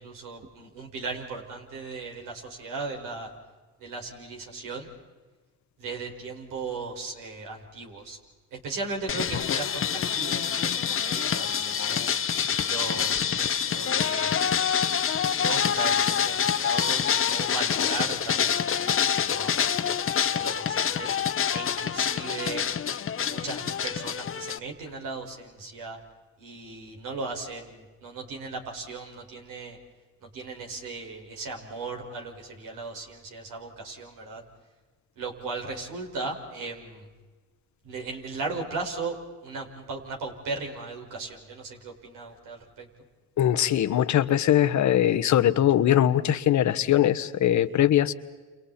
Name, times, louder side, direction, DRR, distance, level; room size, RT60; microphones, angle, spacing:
voice 1, 0.0-3.3 3.8-4.9 5.8-8.2 8.5-12.0 12.6-14.4 15.3-20.0 20.3-21.2 21.5-22.6 23.3-26.0 26.4-29.8 30.2-34.4 35.2-37.1 37.8-39.1 39.4-42.9, right 3 dB, 75° right, 1 dB, 5.5 m, -37 dB
sound 1, 9.1-24.6, left 8 dB, 40° left, 1.1 m, -26 dB
voice 2, 43.4-48.1, left 11 dB, 60° left, 12 dB, 1.2 m, -21 dB
30.0 x 29.0 x 4.3 m, 1.3 s
supercardioid pair, 70°, 32 cm